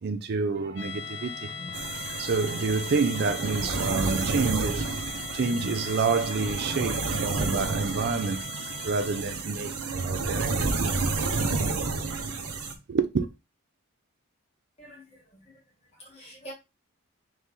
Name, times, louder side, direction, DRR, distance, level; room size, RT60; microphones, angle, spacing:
voice 1, 0.0-1.5 2.2-8.5 8.8-10.7 12.9-13.3, right 4 dB, 45° right, 0.4 m, -28 dB
sound 1, 0.5-6.0, equal, 20° right, 1.1 m, -46 dB
sound 2, 0.7-9.5, left 6 dB, 55° left, 0.7 m, -40 dB
sound 3, 1.7-12.7, right 3 dB, 90° right, 0.9 m, -30 dB
voice 2, 14.8-16.5, right 1 dB, 30° left, 2.1 m, -47 dB
3.9 x 3.2 x 3.6 m
head